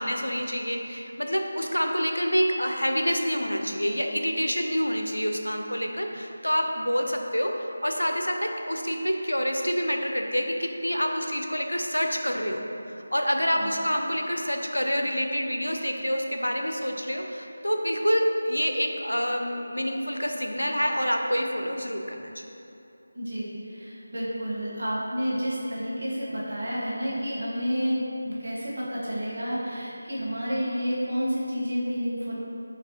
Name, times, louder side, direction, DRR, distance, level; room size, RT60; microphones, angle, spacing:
voice 1, 0.0-12.6 13.1-22.3, equal, 85° left, 3 dB, 0.5 m, -27 dB
voice 2, 23.1-28.0 28.2-32.3, equal, 60° right, -7 dB, 1.3 m, -30 dB
5.8 x 2.9 x 2.9 m, 2.8 s
figure-of-eight pair, 165°, 0 cm